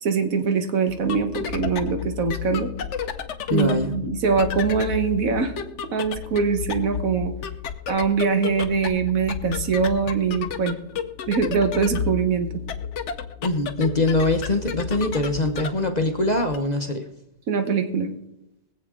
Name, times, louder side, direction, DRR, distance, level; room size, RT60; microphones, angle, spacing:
voice 1, 0.0-2.7 3.5-5.5 5.9-7.3 7.9-10.7 11.3-12.5 17.5-18.1, right 5 dB, 75° right, 6 dB, 1.6 m, -23 dB
sound 1, 0.9-16.6, left 7 dB, 60° left, 1.0 m, -32 dB
voice 2, 3.5-3.9 13.4-17.1, left 2 dB, 35° left, 5 dB, 0.9 m, -23 dB
22.0 x 7.9 x 3.6 m, 0.86 s
omnidirectional pair, 1.5 m